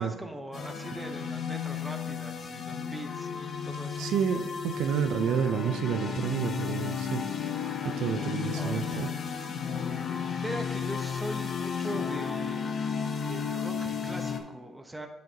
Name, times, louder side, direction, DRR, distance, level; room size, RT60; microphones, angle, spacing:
voice 1, 0.0-4.1 8.5-9.2 10.3-12.6 13.2-15.1, right 1 dB, 10° right, 5 dB, 0.9 m, -41 dB
sound 1, 0.5-14.4, left 6 dB, 55° left, 0.8 m, -33 dB
voice 2, 4.0-7.2 8.0-9.1, right 8 dB, 85° right, 7 dB, 0.5 m, -29 dB
9.1 x 5.4 x 2.8 m, 1.1 s
cardioid pair, 90°, 0 cm